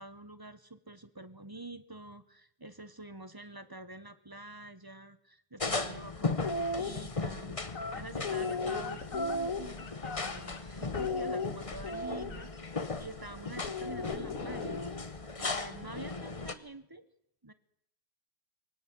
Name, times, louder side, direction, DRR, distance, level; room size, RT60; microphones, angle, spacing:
voice 1, 0.0-7.5 7.9-17.0 17.4-17.5, right 2 dB, 15° right, 12 dB, 0.8 m, -47 dB
sound 1, 5.6-16.5, left 3 dB, 25° left, 0.8 m, -38 dB
sound 2, 6.3-6.9 7.7-10.6 10.9-12.4 13.6-15.0, left 3 dB, 45° left, 2.0 m, -35 dB
23.0 x 17.5 x 7.8 m, 0.75 s
omnidirectional pair, 2.1 m